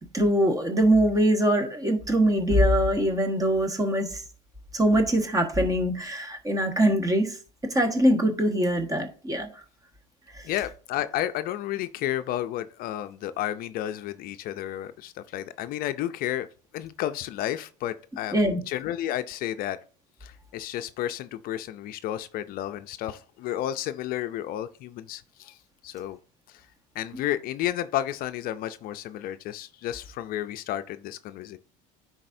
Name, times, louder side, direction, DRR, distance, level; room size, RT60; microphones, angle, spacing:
voice 1, 0.1-4.2 4.7-7.4 7.7-9.5 10.3-10.4 18.3-18.6, right 1 dB, 20° right, 1.4 m, -23 dB
voice 2, 10.4-16.5 16.7-19.8 20.2-25.6 25.8-26.2 26.5-26.7 27.0-31.6, left 12 dB, 55° left, 0.4 m, -32 dB
10.0 x 4.1 x 2.6 m
supercardioid pair, 95°, 18 cm